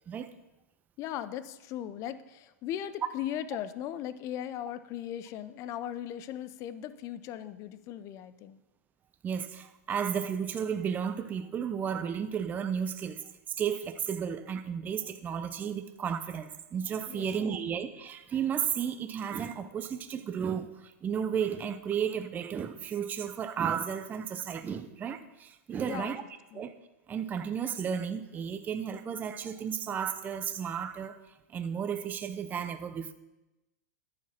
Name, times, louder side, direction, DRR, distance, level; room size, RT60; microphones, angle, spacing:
voice 1, 1.0-8.6 17.1-17.5 25.9-26.1 26.5-26.7, left 11 dB, 35° left, 0.6 m, -38 dB
voice 2, 9.2-13.2 13.6-26.2 26.5-26.8 27.1-31.2 31.5-33.1, right 7 dB, 20° right, 0.6 m, -33 dB
11.0 x 8.7 x 4.4 m
supercardioid pair, 140°, 9 cm